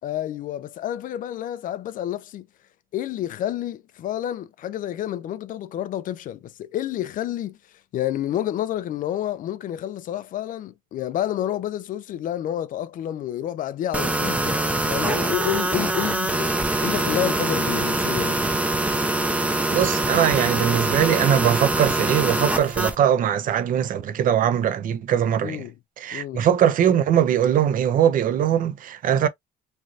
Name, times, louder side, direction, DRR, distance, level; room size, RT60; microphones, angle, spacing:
voice 1, 0.0-2.5 2.9-7.6 7.9-18.4 25.4-25.7 26.1-26.5, left 11 dB, 55° left, 0.4 m, -29 dB
sound 1, 13.9-23.0, right 2 dB, 10° right, 0.5 m, -24 dB
voice 2, 19.7-25.6 26.0-29.3, right 9 dB, 55° right, 0.6 m, -21 dB
3.2 x 2.6 x 2.5 m
cardioid pair, 110°, 17 cm